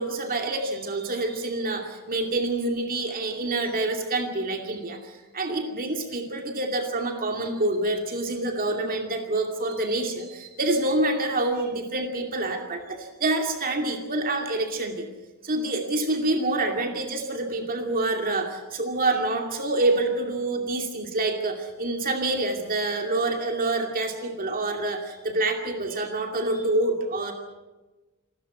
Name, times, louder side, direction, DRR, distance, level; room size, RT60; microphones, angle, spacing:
voice 1, 0.0-15.1 15.4-27.3, right 2 dB, 40° right, 3 dB, 2.5 m, -27 dB
27.0 x 13.5 x 8.2 m, 1.2 s
head